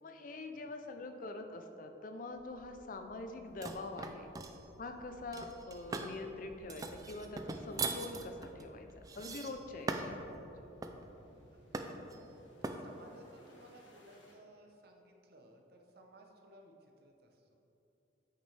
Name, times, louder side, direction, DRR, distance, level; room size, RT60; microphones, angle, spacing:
voice 1, 0.0-4.3 4.8-8.9 9.2-10.7, left 2 dB, 45° left, 6 dB, 0.4 m, -44 dB
sound 1, 2.3-14.4, equal, 80° left, 1.4 m, -61 dB
sound 2, 3.6-4.6 5.3-6.2 6.7-10.2 10.8-11.1 11.7-12.2 12.6-12.8, right 3 dB, 20° right, 0.3 m, -40 dB
voice 2, 11.5-12.2 12.6-17.5, right 1 dB, 55° right, 2 dB, 0.8 m, -59 dB
8.2 x 6.1 x 3.3 m, 3.0 s
head